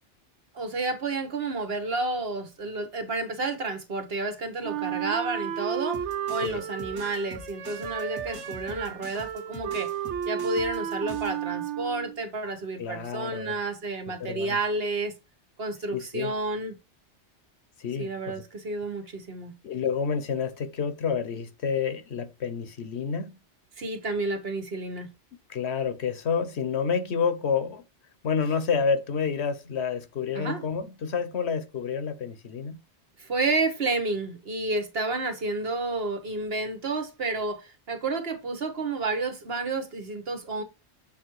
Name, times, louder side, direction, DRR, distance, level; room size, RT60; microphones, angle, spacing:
voice 1, 0.5-6.0 6.3-9.9 10.3-15.1 15.6-16.7 18.0-19.5 23.8-25.1 30.3-30.6 33.2-40.6, right 3 dB, 60° right, 1.5 m, -30 dB
Wind instrument woodwind instrument, 4.6-12.2, right 10 dB, 85° right, 1.0 m, -33 dB
sound 1, 5.9-11.4, right 1 dB, 20° right, 0.9 m, -45 dB
voice 2, 12.8-13.6 14.2-14.6 15.9-16.3 17.8-18.4 19.6-23.4 25.5-27.8 28.2-32.8, left 6 dB, 70° left, 1.1 m, -29 dB
7.3 x 3.5 x 4.7 m
omnidirectional pair, 1.2 m